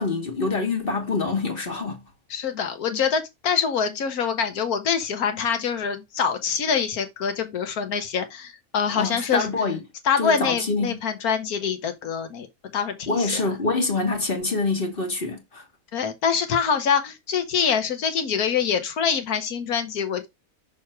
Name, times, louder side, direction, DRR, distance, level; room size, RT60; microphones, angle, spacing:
voice 1, 0.0-2.0 9.0-9.8 10.2-11.0 13.1-15.6, left 3 dB, 40° left, 1.4 m, -25 dB
voice 2, 2.3-9.5 10.0-12.5 12.7-13.5 15.9-20.3, left 7 dB, 75° left, 1.5 m, -25 dB
6.3 x 3.5 x 4.3 m
omnidirectional pair, 1.6 m